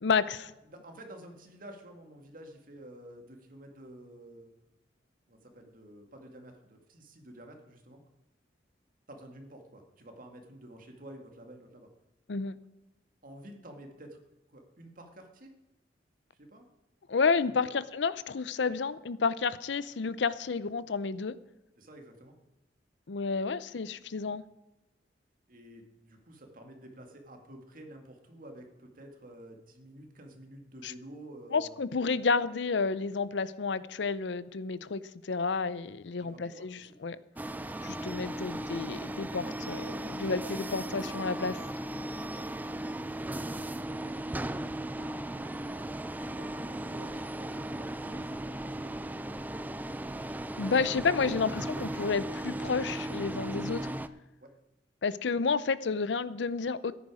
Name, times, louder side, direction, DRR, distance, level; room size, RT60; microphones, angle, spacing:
voice 1, 0.0-0.5 12.3-12.6 17.1-21.4 23.1-24.4 30.8-30.9 31.5-37.2 37.8-41.6 50.6-53.9 55.0-56.9, left 4 dB, 70° left, 17 dB, 0.6 m, -30 dB
voice 2, 0.6-4.5 5.3-8.0 9.1-11.9 13.2-14.2 14.5-15.5 16.3-16.7 17.7-17.8 21.8-22.4 25.5-31.8 36.2-37.0 42.2-42.5 43.3-45.1 46.4-49.0 54.4-54.5, right 1 dB, 50° right, 4 dB, 2.1 m, -50 dB
sound 1, 37.4-54.1, right 1 dB, 10° right, 0.4 m, -37 dB
14.0 x 10.0 x 4.9 m, 0.99 s
head